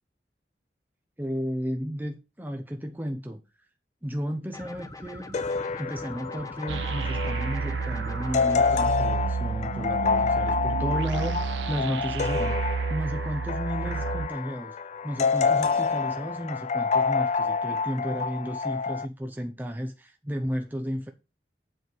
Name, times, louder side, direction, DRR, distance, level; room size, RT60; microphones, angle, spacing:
voice 1, 1.2-3.4 4.0-5.4 5.8-14.8 15.0-21.1, equal, 10° right, 0.8 m, -33 dB
sound 1, 4.5-8.9, left 2 dB, 20° left, 0.9 m, -42 dB
sound 2, 5.3-19.1, left 5 dB, 40° left, 0.4 m, -28 dB
sound 3, 6.7-14.3, right 5 dB, 80° right, 0.4 m, -31 dB
7.9 x 4.7 x 6.1 m
head